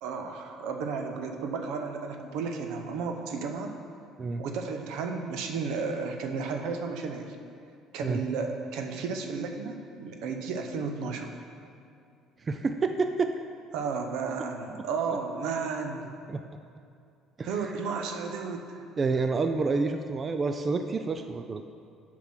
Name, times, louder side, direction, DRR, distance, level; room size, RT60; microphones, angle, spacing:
voice 1, 0.0-3.7 4.4-7.4 7.9-11.4 13.7-16.1 17.4-18.7, right 5 dB, 80° right, 4 dB, 0.8 m, -33 dB
voice 2, 12.4-13.3 16.3-16.4 17.4-17.7 19.0-21.6, right 4 dB, 25° right, 7 dB, 0.3 m, -28 dB
7.1 x 4.8 x 5.8 m, 2.5 s
cardioid pair, 125°, 0 cm